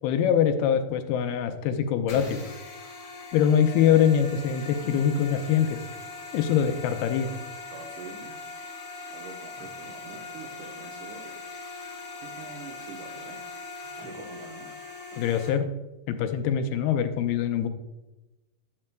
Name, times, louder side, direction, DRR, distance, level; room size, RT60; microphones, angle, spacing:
voice 1, 0.0-2.4 3.3-5.8 6.3-7.3 15.2-15.6 16.1-17.7, left 8 dB, 85° left, 8 dB, 2.5 m, -23 dB
sound 1, 2.1-15.5, left 3 dB, 45° left, 2.1 m, -41 dB
voice 2, 7.7-8.7 9.1-11.5 12.2-13.4 14.0-14.7 15.1-15.2, right 4 dB, 75° right, 1 dB, 2.0 m, -45 dB
9.6 x 8.6 x 2.2 m, 1.0 s
omnidirectional pair, 4.3 m